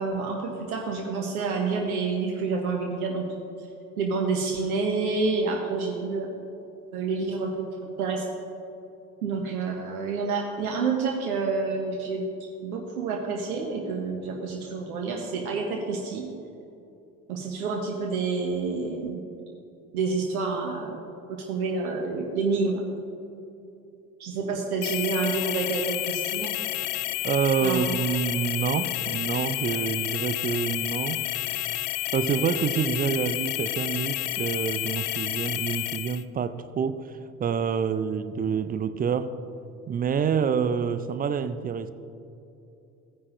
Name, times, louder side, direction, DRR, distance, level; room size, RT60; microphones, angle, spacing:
voice 1, 0.0-3.2 3.6-3.7 4.0-6.3 6.9-8.2 9.2-12.3 12.6-16.2 17.3-19.2 19.9-21.0 21.3-22.8 24.2-26.6 27.6-28.0, right 4 dB, 75° right, 1 dB, 1.0 m, -28 dB
sound 1, 24.8-36.2, left 17 dB, 55° left, 0.5 m, -30 dB
voice 2, 27.2-31.2 31.6-36.9 37.4-39.3 39.9-41.9, right 7 dB, 20° right, 12 dB, 0.4 m, -27 dB
16.0 x 9.5 x 2.6 m, 2.8 s
figure-of-eight pair, 60°, 44 cm